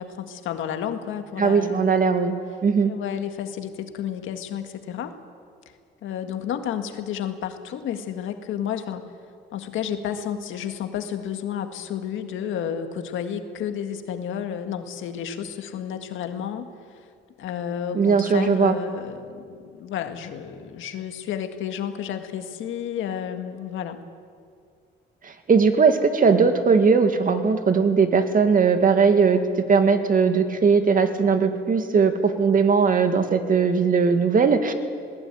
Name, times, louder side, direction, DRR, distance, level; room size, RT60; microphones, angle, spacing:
voice 1, 0.0-2.0 2.8-5.2 6.0-9.1 9.5-16.7 17.4-24.0, left 9 dB, 85° left, 7 dB, 1.8 m, -31 dB
voice 2, 1.4-2.4 2.6-2.9 17.9-18.7 25.2-29.4 29.7-34.7, right 5 dB, 45° right, 7 dB, 2.2 m, -19 dB
20.5 x 18.5 x 9.1 m, 2.2 s
cardioid pair, 90°, 20 cm